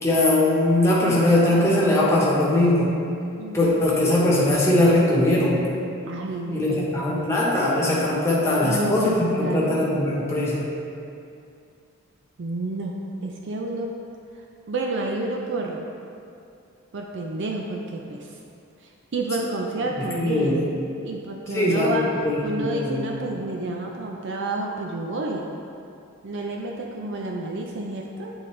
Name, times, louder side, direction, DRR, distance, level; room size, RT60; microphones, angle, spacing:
voice 1, 0.0-2.9 3.5-5.6 6.5-10.6 20.1-20.6 21.5-23.1, left 1 dB, 10° left, -7 dB, 1.2 m, -20 dB
voice 2, 3.4-3.7 6.1-7.4 8.6-9.9 12.4-12.9 13.2-13.9 14.7-15.8 16.9-18.4 18.8-20.6 21.0-25.5 26.2-28.3, right 2 dB, 55° right, 0 dB, 0.5 m, -30 dB
9.0 x 3.9 x 3.3 m, 2.5 s
head